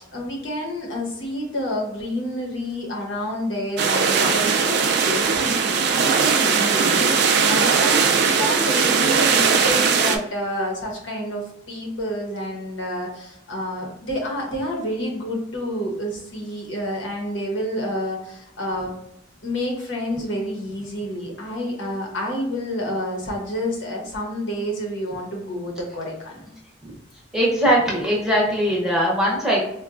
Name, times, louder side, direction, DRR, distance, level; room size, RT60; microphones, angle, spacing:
voice 1, 0.1-18.9 19.4-26.5, equal, 80° left, -1 dB, 0.9 m, -29 dB
sound 1, 3.8-10.2, right 5 dB, 60° right, 0.3 m, -19 dB
voice 2, 27.3-29.6, equal, 5° right, -4 dB, 0.7 m, -20 dB
4.0 x 2.2 x 2.4 m, 0.80 s
head